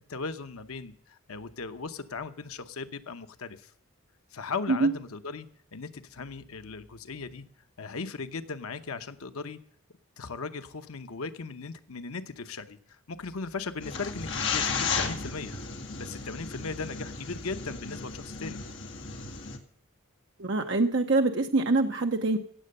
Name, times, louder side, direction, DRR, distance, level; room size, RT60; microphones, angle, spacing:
voice 1, 0.1-3.7 4.3-5.5 5.7-7.4 7.8-9.6 10.2-15.7 16.0-18.6, left 4 dB, 85° left, 10 dB, 0.9 m, -38 dB
sound 1, 13.8-19.6, left 5 dB, 60° left, 1.9 m, -34 dB
voice 2, 20.4-22.4, right 3 dB, 55° right, 4 dB, 0.8 m, -24 dB
16.5 x 7.7 x 6.6 m, 0.63 s
head